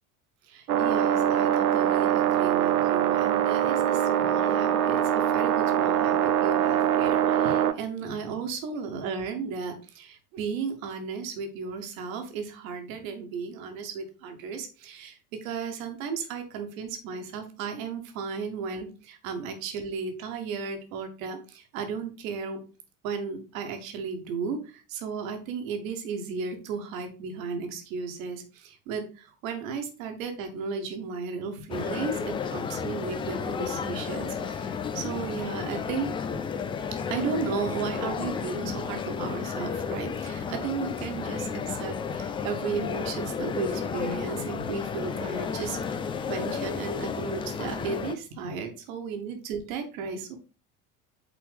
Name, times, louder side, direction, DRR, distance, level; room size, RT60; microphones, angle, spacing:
voice 1, 0.5-22.6 23.0-36.1 37.1-46.0 46.3-50.4, right 5 dB, 60° right, 5 dB, 1.7 m, -35 dB
sound 1, 0.7-7.7, right 10 dB, 75° right, 0.7 m, -23 dB
sound 2, 31.7-48.1, left 6 dB, 15° left, 0.3 m, -32 dB
8.2 x 4.2 x 3.5 m, 0.34 s
figure-of-eight pair, 65°, 46 cm